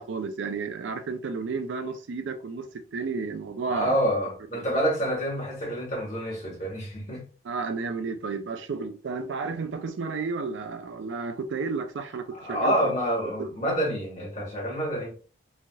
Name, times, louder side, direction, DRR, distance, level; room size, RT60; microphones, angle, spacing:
voice 1, 0.0-2.7 2.9-4.0 7.4-12.9, right 4 dB, 90° right, 0.4 m, -32 dB
voice 2, 3.7-7.2 12.3-15.1, equal, 40° left, 1.4 m, -28 dB
3.2 x 2.6 x 2.3 m
head